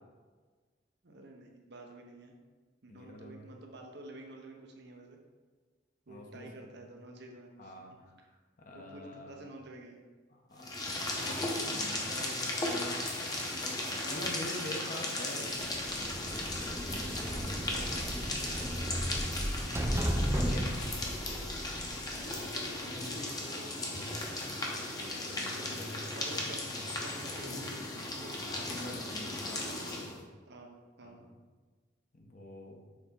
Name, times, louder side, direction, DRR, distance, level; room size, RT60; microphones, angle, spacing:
voice 1, 1.0-2.3 2.8-5.2 6.1-7.7 8.7-10.0 17.0-18.0 22.2-24.0 24.3-24.5 25.3-28.4 30.5-31.3, right 1 dB, 65° right, 2 dB, 0.9 m, -50 dB
voice 2, 2.9-3.5 6.1-6.9 7.6-7.9 8.6-9.5 10.3-10.8 11.7-13.1 14.0-15.6 20.0-20.7 24.4-26.4 28.5-30.2 31.0-31.3 32.1-32.9, left 1 dB, 45° left, 1 dB, 1.0 m, -46 dB
sound 1, 10.6-30.2, left 2 dB, 20° left, 0.9 m, -36 dB
sound 2, 15.6-22.4, equal, 15° right, 0.6 m, -35 dB
6.4 x 4.1 x 3.7 m, 1.4 s
head